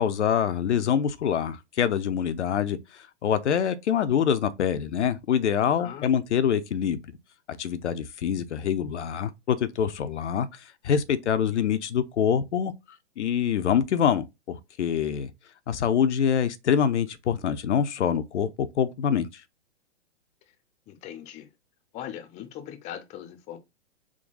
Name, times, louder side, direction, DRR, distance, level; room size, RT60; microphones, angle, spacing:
voice 1, 0.0-7.0 7.6-12.7 13.2-15.3 15.7-19.4, left 8 dB, 80° left, 0.6 m, -25 dB
voice 2, 5.8-6.1 20.9-21.5 21.9-23.6, left 10 dB, 20° left, 0.6 m, -40 dB
3.7 x 2.2 x 4.0 m
hypercardioid pair, 125°, 35 cm